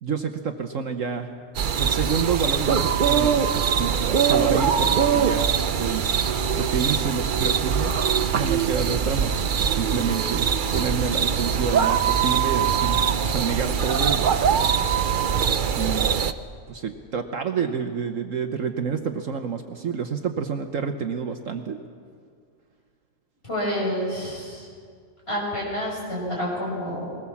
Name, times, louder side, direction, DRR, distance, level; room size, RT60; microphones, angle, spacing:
voice 1, 0.0-1.3 1.7-14.7 15.7-16.2 16.7-21.8, right 6 dB, 60° right, 6 dB, 1.2 m, -29 dB
sound 1, 1.5-16.3, right 7 dB, 80° right, 0.4 m, -22 dB
voice 2, 23.4-24.7 25.3-27.3, equal, 40° left, -4 dB, 6.5 m, -28 dB
21.0 x 19.5 x 7.1 m, 2.1 s
omnidirectional pair, 1.7 m